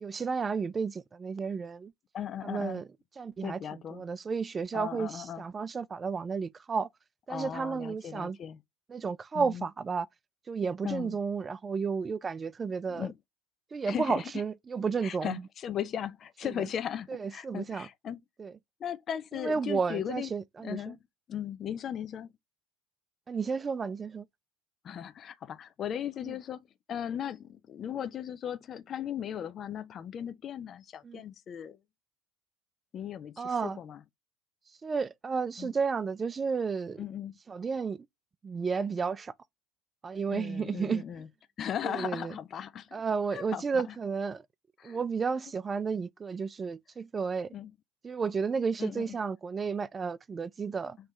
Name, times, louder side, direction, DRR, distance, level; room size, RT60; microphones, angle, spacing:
voice 1, 0.0-1.9 2.4-2.8 3.2-6.9 7.3-8.4 8.9-10.1 10.5-13.1 13.7-15.4 16.4-16.5 17.1-17.9 18.4-18.5 19.4-20.9 23.3-24.3 26.2-26.3 31.0-31.2 33.4-33.8 34.8-37.0 37.5-38.0 38.4-39.3 40.0-41.0 41.8-42.3 42.9-44.4 44.8-47.5 48.0-51.0, right 5 dB, 25° right, 0.3 m, -32 dB
voice 2, 2.1-2.8 3.4-4.0 4.7-5.4 7.3-8.6 9.3-9.7 10.8-11.2 12.9-13.2 13.9-14.4 15.0-18.2 18.8-20.3 20.6-21.0 21.3-22.3 24.8-26.6 26.9-31.8 32.9-34.0 35.6-35.7 37.0-37.3 40.3-41.3 41.6-43.0 43.3-44.0 44.8-45.0 47.5-47.7 48.8-49.2, left 9 dB, 40° left, 0.5 m, -37 dB
3.2 x 3.0 x 2.8 m
hypercardioid pair, 70°, 0 cm